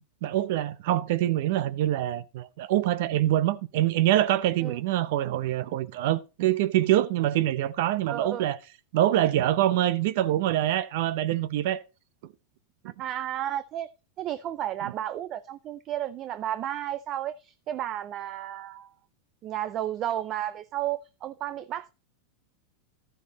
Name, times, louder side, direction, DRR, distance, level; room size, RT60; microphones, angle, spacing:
voice 1, 0.2-8.6 8.9-11.8, right 13 dB, 65° right, 0.7 m, -25 dB
voice 2, 8.1-8.4 13.0-13.9 14.2-18.9 19.4-21.9, right 11 dB, 35° right, 0.5 m, -32 dB
12.5 x 6.9 x 4.1 m
supercardioid pair, 150°, 0 cm